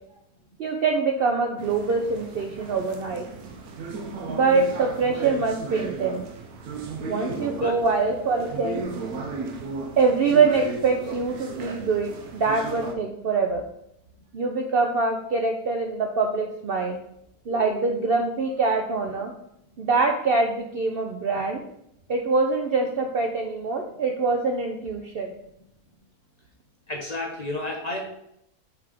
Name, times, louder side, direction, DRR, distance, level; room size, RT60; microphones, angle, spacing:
voice 1, 0.6-3.2 4.3-6.2 7.1-8.9 10.0-13.6 14.3-17.0 17.5-19.3 19.8-21.6 22.1-25.3, right 4 dB, 60° right, 3 dB, 0.6 m, -24 dB
sound 1, 1.6-13.0, right 3 dB, 90° right, 1.2 m, -36 dB
voice 2, 17.5-18.1 26.9-28.1, left 2 dB, 40° left, -1 dB, 0.6 m, -32 dB
5.7 x 3.5 x 4.8 m, 0.77 s
omnidirectional pair, 1.5 m